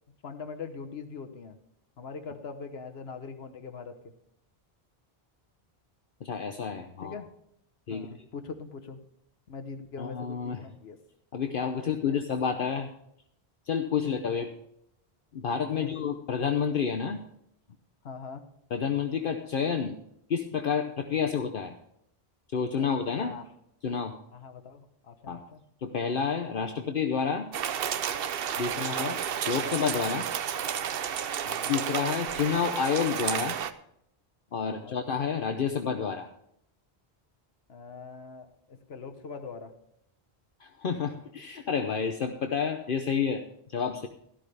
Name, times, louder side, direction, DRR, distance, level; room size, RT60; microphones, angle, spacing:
voice 1, 0.2-1.6 2.0-4.0 7.0-7.2 7.9-9.0 9.5-11.0 11.8-12.2 14.0-14.3 15.7-15.9 18.0-18.4 21.1-21.3 22.8-22.9 23.1-23.4 24.3-25.6 28.6-28.9 31.4-31.7 34.5-35.0 37.7-39.7, left 5 dB, 75° left, 6 dB, 1.2 m, -42 dB
voice 2, 6.2-7.2 7.9-8.1 10.0-10.6 11.3-12.9 13.7-14.5 15.3-17.2 18.7-19.9 20.3-21.8 22.5-23.4 23.8-24.1 25.3-25.4 25.8-27.5 28.6-29.2 29.5-30.3 31.7-33.6 34.5-36.3 40.6-43.4 43.7-44.1, left 6 dB, 60° left, 6 dB, 0.9 m, -29 dB
sound 1, 27.5-33.7, right 8 dB, 65° right, 0.8 m, -31 dB
13.0 x 12.5 x 3.4 m, 0.74 s
omnidirectional pair, 1.1 m